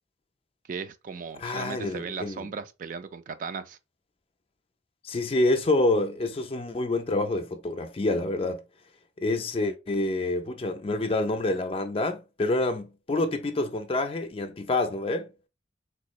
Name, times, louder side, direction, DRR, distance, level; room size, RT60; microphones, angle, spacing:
voice 1, 0.7-3.8, right 5 dB, 50° right, 0.3 m, -36 dB
voice 2, 1.4-2.5 5.0-8.6 9.2-15.3, left 2 dB, 30° left, 0.4 m, -27 dB
3.5 x 3.0 x 2.4 m
head